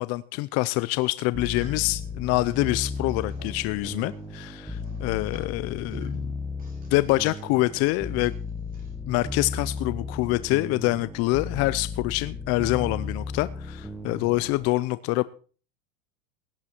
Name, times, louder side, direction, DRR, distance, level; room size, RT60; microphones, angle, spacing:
voice 1, 0.0-6.3 6.9-8.3 9.1-15.2, left 20 dB, 40° left, 0.6 m, -26 dB
sound 1, 1.3-14.7, left 3 dB, ahead, 1.3 m, -35 dB
sound 2, 1.3-8.9, right 2 dB, 20° right, 6.6 m, -55 dB
17.5 x 11.0 x 4.5 m
supercardioid pair, 145°, 39 cm